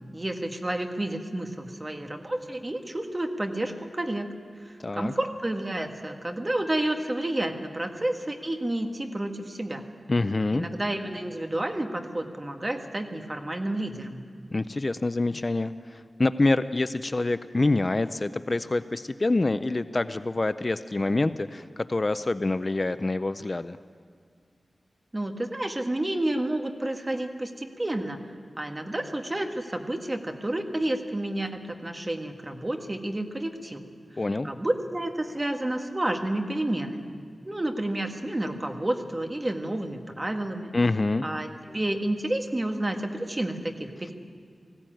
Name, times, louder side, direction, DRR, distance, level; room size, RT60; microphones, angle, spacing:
voice 1, 0.1-4.3 4.6-9.8 10.5-14.2 25.1-28.2 28.6-33.9 34.4-37.2 37.4-40.7 41.2-44.1, right 1 dB, 25° right, 4 dB, 1.7 m, -30 dB
voice 2, 4.8-5.1 10.1-10.7 14.5-23.8 34.2-34.5 40.7-41.3, left 2 dB, 35° left, 12 dB, 0.5 m, -26 dB
20.0 x 16.0 x 9.1 m, 2.1 s
wide cardioid pair, 95°, 0 cm